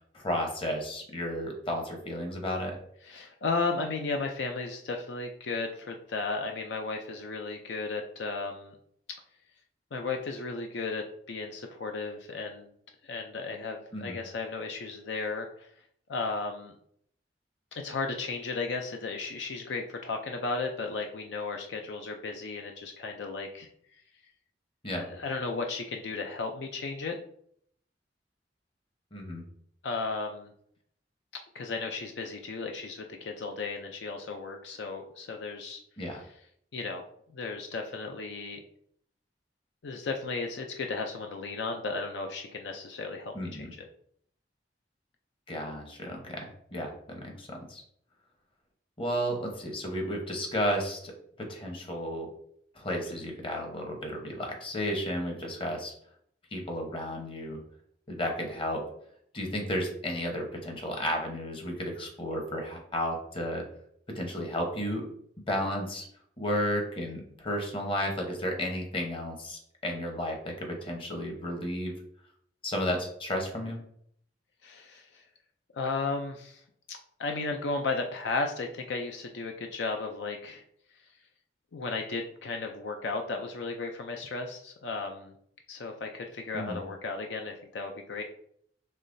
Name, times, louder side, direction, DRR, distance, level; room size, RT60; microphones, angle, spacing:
voice 1, 0.1-2.8 13.9-14.2 24.8-25.1 29.1-29.4 36.0-36.2 43.3-43.7 45.5-47.8 49.0-51.1 51.4-52.3 52.7-55.9 56.5-57.6 58.1-58.8 59.3-63.6 64.1-65.1 65.5-66.1 66.4-71.9 72.6-73.8 86.5-86.8, equal, 30° left, 2 dB, 1.0 m, -33 dB
voice 2, 3.0-8.8 9.9-12.7 13.0-15.7 16.1-16.7 17.7-23.7 24.9-27.2 29.8-30.5 31.5-35.8 36.7-38.6 39.8-43.7 74.6-75.2 75.7-76.6 76.9-80.6 81.7-85.3 85.7-88.2, left 3 dB, 75° left, 4 dB, 0.5 m, -34 dB
5.5 x 3.2 x 2.6 m, 0.66 s
head